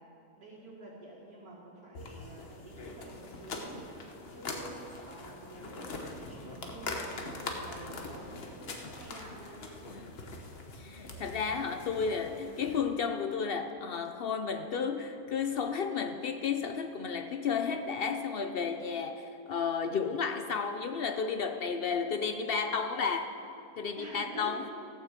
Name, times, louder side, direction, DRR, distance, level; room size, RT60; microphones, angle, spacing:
voice 1, 0.4-3.9 4.3-9.5 9.8-10.1 10.5-10.6 11.9-12.2 24.0-24.7, right 2 dB, 85° right, -7 dB, 2.3 m, -48 dB
sound 1, 1.9-12.8, left 2 dB, 45° left, 1.2 m, -42 dB
voice 2, 10.8-23.3 23.8-24.7, left 6 dB, 60° left, 7 dB, 0.6 m, -32 dB
15.5 x 6.3 x 7.4 m, 2.7 s
omnidirectional pair, 1.5 m